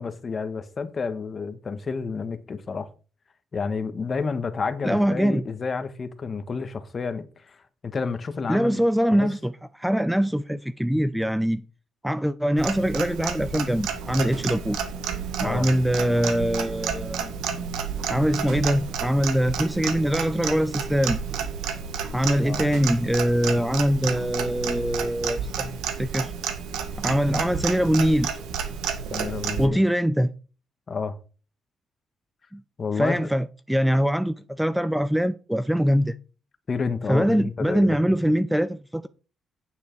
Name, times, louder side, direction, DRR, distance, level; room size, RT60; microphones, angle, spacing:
voice 1, 0.0-2.9 3.5-7.6 7.9-8.8 9.1-9.3 15.4-15.7 22.4-22.6 29.1-29.8 30.9-31.2 32.8-33.3 36.7-38.0, left 5 dB, 40° left, 1.5 m, -30 dB
voice 2, 4.8-5.4 8.5-11.6 12.0-14.8 15.4-17.3 18.1-21.2 22.1-26.3 27.0-28.4 29.6-30.3 32.5-32.6 33.0-36.2 37.1-39.1, equal, 5° right, 0.6 m, -23 dB
Clock, 12.6-29.7, right 7 dB, 90° right, 1.8 m, -31 dB
9.2 x 8.1 x 4.7 m
cardioid pair, 90°, 0 cm